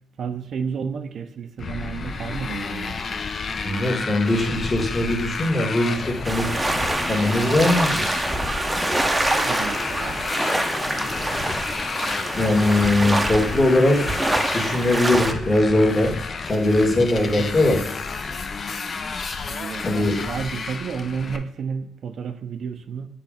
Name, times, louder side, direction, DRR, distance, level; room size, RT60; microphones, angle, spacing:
voice 1, 0.2-2.9 9.3-10.2 17.4-17.5 19.5-23.1, right 6 dB, 60° right, 8 dB, 0.5 m, -31 dB
Motorcycle, 1.6-21.4, left 4 dB, 45° left, 0.6 m, -31 dB
voice 2, 3.6-6.5 7.1-8.0 12.3-14.0 14.5-16.1 16.5-17.8 19.8-20.2, left 1 dB, 25° left, 1 dB, 1.6 m, -20 dB
sound 1, 6.2-15.3, right 1 dB, 10° right, 0.7 m, -25 dB
6.8 x 3.1 x 5.0 m, 0.84 s
cardioid pair, 90°, 0 cm